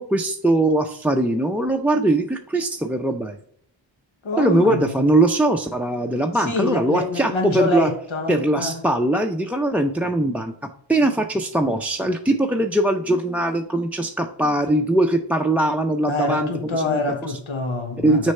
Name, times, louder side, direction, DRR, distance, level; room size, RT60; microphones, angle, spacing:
voice 1, 0.0-3.4 4.4-7.9 8.3-17.0 18.0-18.3, right 1 dB, 5° right, 0.5 m, -21 dB
voice 2, 4.2-5.0 6.4-8.7 16.1-18.3, left 2 dB, 85° left, 1.2 m, -26 dB
6.4 x 3.3 x 5.4 m
wide cardioid pair, 55°, 47 cm